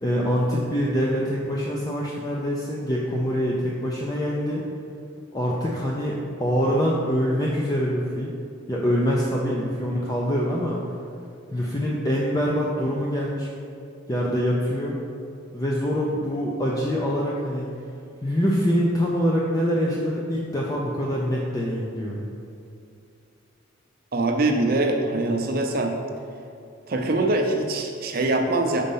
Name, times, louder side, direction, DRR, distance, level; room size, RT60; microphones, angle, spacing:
voice 1, 0.0-4.6 5.3-8.3 8.7-10.8 11.5-13.5 14.1-15.0 15.5-17.7 18.2-22.2, equal, 20° left, -4 dB, 0.5 m, -24 dB
voice 2, 24.1-25.9 26.9-28.8, right 2 dB, 45° right, 3 dB, 0.6 m, -23 dB
5.3 x 4.2 x 5.4 m, 2.5 s
head